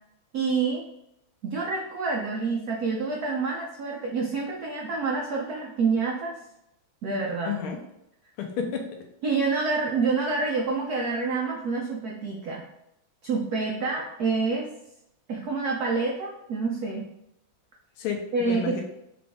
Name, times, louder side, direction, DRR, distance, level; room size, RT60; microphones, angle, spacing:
voice 1, 0.3-0.8 1.4-6.4 7.0-7.6 9.2-12.6 13.2-14.7 15.3-17.1 18.3-18.8, right 4 dB, 80° right, -1 dB, 0.8 m, -27 dB
voice 2, 7.5-7.8 8.4-8.9 18.0-18.8, left 6 dB, 80° left, 3 dB, 1.6 m, -31 dB
4.9 x 2.6 x 3.5 m, 0.81 s
omnidirectional pair, 2.4 m